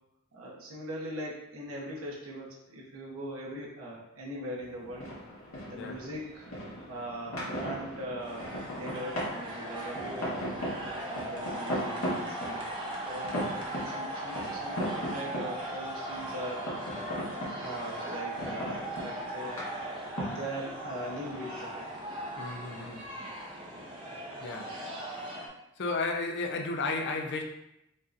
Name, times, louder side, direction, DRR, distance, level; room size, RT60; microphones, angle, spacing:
voice 1, 0.3-5.1 5.7-6.5 6.9-10.4 10.8-12.7 13.1-16.7 17.6-19.6 20.3-21.9, right 1 dB, 75° right, -4 dB, 1.1 m, -40 dB
sound 1, 4.6-23.8, equal, 80° left, 1.4 m, -39 dB
sound 2, 8.2-25.5, right 1 dB, 25° right, 0.7 m, -39 dB
voice 2, 22.4-23.0 24.4-24.8 25.1-25.3 25.8-27.4, left 3 dB, 55° left, 3 dB, 0.5 m, -33 dB
5.3 x 2.6 x 2.6 m, 0.83 s
head